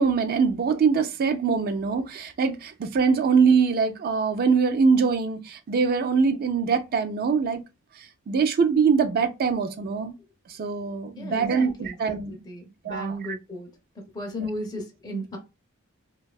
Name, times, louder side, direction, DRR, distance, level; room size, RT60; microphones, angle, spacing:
voice 1, 0.0-7.6 8.3-10.1 10.6-12.4 12.8-13.4 14.4-14.5, right 5 dB, 45° right, 0.4 m, -23 dB
voice 2, 11.2-13.7 14.0-15.4, equal, 20° left, 0.5 m, -35 dB
2.6 x 2.3 x 2.3 m
head